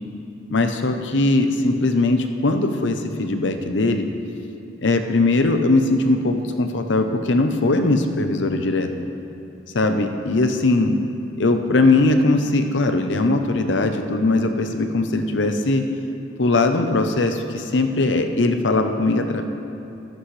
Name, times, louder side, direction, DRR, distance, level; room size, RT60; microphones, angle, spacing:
voice 1, 0.5-4.1 4.8-8.9 9.7-11.0 11.4-15.8 16.4-19.4, left 2 dB, 70° left, 6 dB, 0.8 m, -20 dB
14.0 x 12.5 x 3.3 m, 2.8 s
head